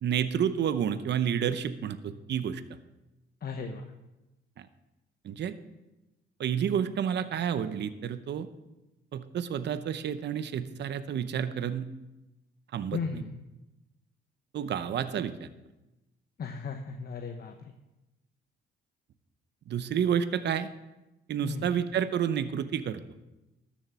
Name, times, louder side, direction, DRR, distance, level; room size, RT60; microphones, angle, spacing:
voice 1, 0.0-2.6 4.6-4.7 5.2-5.5 6.4-8.5 9.1-11.9 12.7-13.2 14.5-15.5 19.7-20.7 21.3-23.0, right 8 dB, 60° right, 12 dB, 0.8 m, -30 dB
voice 2, 3.4-3.9 12.9-13.4 16.4-17.5 21.4-21.7, left 5 dB, 50° left, 5 dB, 1.0 m, -36 dB
13.0 x 7.3 x 5.9 m, 1.0 s
cardioid pair, 90°, 20 cm